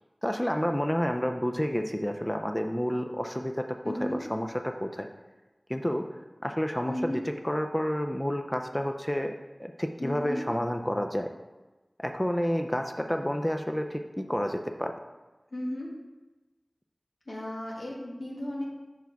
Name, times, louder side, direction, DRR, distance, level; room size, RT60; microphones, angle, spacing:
voice 1, 0.2-5.1 5.7-9.3 9.6-11.3 12.0-14.9, equal, 15° left, 5 dB, 0.4 m, -30 dB
voice 2, 3.8-4.2 6.8-7.2 10.0-10.4 15.5-15.9 17.3-18.6, left 1 dB, 90° left, -4 dB, 1.4 m, -34 dB
5.6 x 4.6 x 4.6 m, 1.1 s
wide cardioid pair, 50°, 0 cm